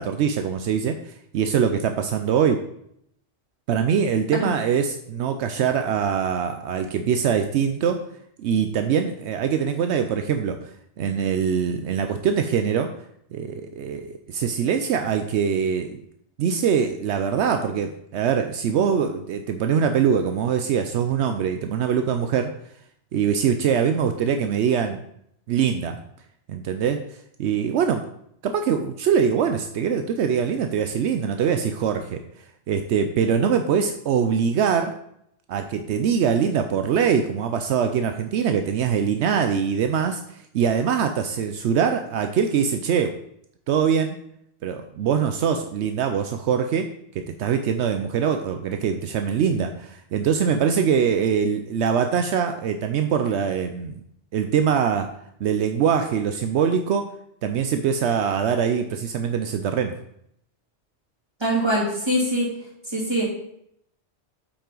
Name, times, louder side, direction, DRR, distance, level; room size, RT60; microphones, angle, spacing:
voice 1, 0.0-2.6 3.7-8.1 8.4-10.7 11.0-12.9 13.3-16.0 16.4-22.5 23.1-25.0 25.5-26.0 26.5-27.0 27.4-28.1 28.4-32.2 32.7-34.9 35.5-43.2 43.7-44.2 44.6-46.9 47.1-54.0 54.3-55.2 55.4-57.1 57.4-60.0, right 7 dB, 80° right, 6 dB, 0.9 m, -23 dB
voice 2, 61.4-62.5 62.9-63.2, equal, 20° right, -5 dB, 2.6 m, -23 dB
8.4 x 5.6 x 3.8 m, 0.73 s
omnidirectional pair, 1.2 m